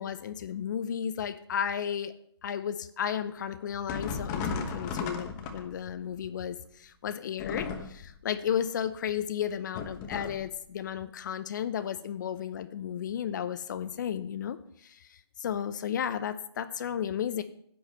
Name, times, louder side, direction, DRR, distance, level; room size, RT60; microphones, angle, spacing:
voice 1, 0.0-2.1 2.4-17.4, left 8 dB, 40° left, 12 dB, 0.7 m, -33 dB
sound 1, 3.9-6.0 7.4-8.2 9.8-10.5, left 5 dB, 20° left, 1.2 m, -35 dB
10.5 x 4.8 x 7.4 m, 0.68 s
figure-of-eight pair, 145°, 15 cm